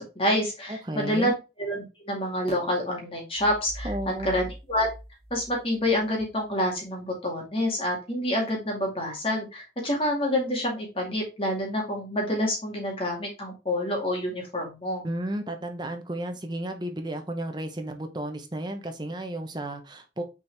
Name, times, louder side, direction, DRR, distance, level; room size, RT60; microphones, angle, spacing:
voice 1, 0.0-1.3 1.6-3.9 4.2-4.9 5.3-15.0, left 1 dB, 30° left, 0 dB, 2.1 m, -27 dB
voice 2, 0.7-1.3 3.8-4.4 15.0-20.2, right 1 dB, 25° right, 6 dB, 0.9 m, -33 dB
sound 1, 3.4-6.0, equal, 55° right, 1.5 m, -41 dB
6.2 x 4.5 x 3.4 m, 0.27 s
head